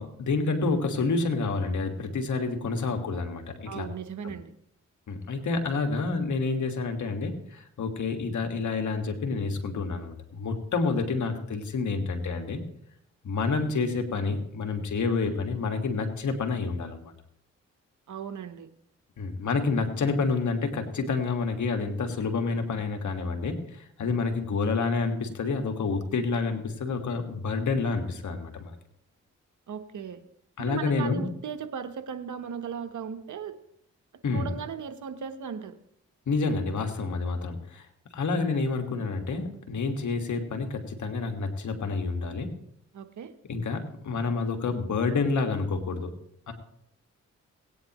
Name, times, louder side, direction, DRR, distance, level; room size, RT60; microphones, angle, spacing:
voice 1, 0.0-3.9 4.2-4.3 5.1-12.6 13.2-17.1 19.2-28.8 30.6-31.3 34.2-34.5 36.3-37.9 38.1-42.5 43.5-46.1 46.5-46.6, left 4 dB, 70° left, 5 dB, 1.8 m, -28 dB
voice 2, 3.7-4.5 18.1-18.7 29.7-30.2 30.6-33.5 34.3-35.8 42.9-43.3, right 7 dB, 75° right, 10 dB, 1.0 m, -37 dB
18.0 x 9.3 x 3.0 m, 0.71 s
supercardioid pair, 50°, 31 cm